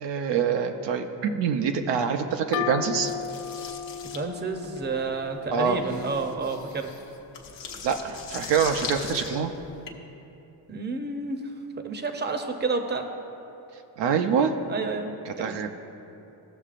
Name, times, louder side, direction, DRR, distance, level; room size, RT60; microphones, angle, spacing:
voice 1, 0.0-3.1 5.5-5.8 7.8-9.5 14.0-14.5 15.3-15.7, right 6 dB, 75° right, 5 dB, 0.7 m, -25 dB
sound 1, 2.5-6.1, left 9 dB, 60° left, 0.5 m, -35 dB
sound 2, 3.0-9.9, left 6 dB, 85° left, 1.0 m, -40 dB
voice 2, 4.1-6.9 10.7-11.4 11.8-13.1 14.7-15.6, right 4 dB, 25° right, 5 dB, 0.7 m, -30 dB
15.5 x 6.5 x 2.5 m, 2.9 s
cardioid pair, 95°, 43 cm